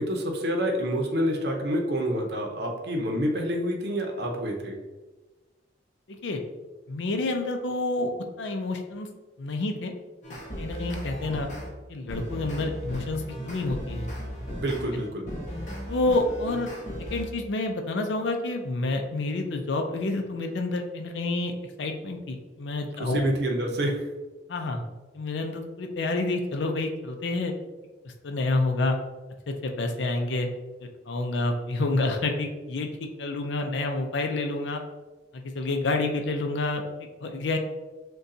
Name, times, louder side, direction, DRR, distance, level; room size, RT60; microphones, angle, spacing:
voice 1, 0.0-4.8 14.5-15.3 23.0-24.0, equal, 60° right, 1 dB, 0.7 m, -28 dB
voice 2, 6.9-8.1 8.4-9.1 9.4-9.9 10.6-11.5 11.9-14.1 15.9-16.7 17.1-21.5 21.8-23.3 24.5-24.8 25.1-27.5 28.2-29.0 29.5-30.5 31.1-34.8 35.3-36.8 37.2-37.6, left 2 dB, 80° left, 4 dB, 0.5 m, -28 dB
sound 1, 10.2-11.7 12.1-17.2, equal, 40° left, 1.0 m, -36 dB
6.4 x 2.3 x 2.7 m, 1.2 s
head